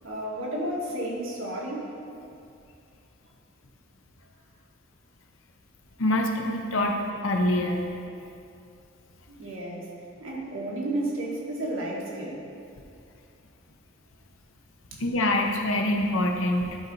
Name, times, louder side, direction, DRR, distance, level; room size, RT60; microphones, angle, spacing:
voice 1, 0.0-1.9 9.3-9.9 10.2-12.5 14.9-15.0, right 1 dB, 90° right, -4 dB, 1.7 m, -32 dB
voice 2, 6.0-7.0 7.2-7.8 15.0-16.8, left 1 dB, 85° left, 2 dB, 0.8 m, -25 dB
11.5 x 4.0 x 4.7 m, 2.5 s
head